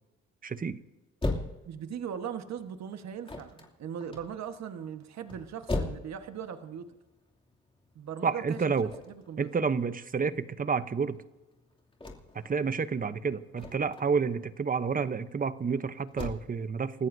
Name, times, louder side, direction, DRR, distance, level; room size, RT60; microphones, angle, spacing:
voice 1, 0.4-0.8 8.2-8.9 9.4-11.2 12.3-17.1, right 5 dB, 30° right, 13 dB, 0.8 m, -29 dB
sound 1, 1.2-16.3, left 2 dB, 15° left, 2.6 m, -39 dB
voice 2, 1.6-6.9 7.9-8.6 9.1-9.5, right 8 dB, 60° right, 7 dB, 1.4 m, -39 dB
29.5 x 14.0 x 2.7 m, 1.1 s
cardioid pair, 90°, 30 cm